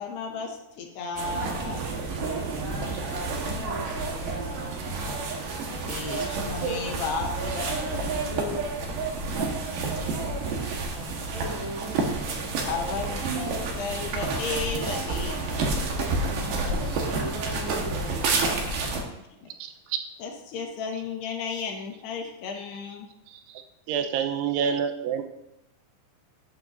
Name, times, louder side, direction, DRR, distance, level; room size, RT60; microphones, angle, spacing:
voice 1, 0.0-1.9 5.7-8.7 12.4-15.4 19.4-19.5 20.2-23.1, left 4 dB, 70° left, 2 dB, 2.8 m, -34 dB
sound 1, 1.2-19.0, right 3 dB, 65° right, 2.5 m, -29 dB
voice 2, 2.3-5.1 9.3-11.9 16.0-18.5 18.9-19.2, right 1 dB, 30° left, -5 dB, 1.5 m, -40 dB
voice 3, 19.6-20.0 23.3-25.2, right 7 dB, 90° right, 6 dB, 3.3 m, -28 dB
15.0 x 8.6 x 2.6 m, 0.87 s
omnidirectional pair, 5.3 m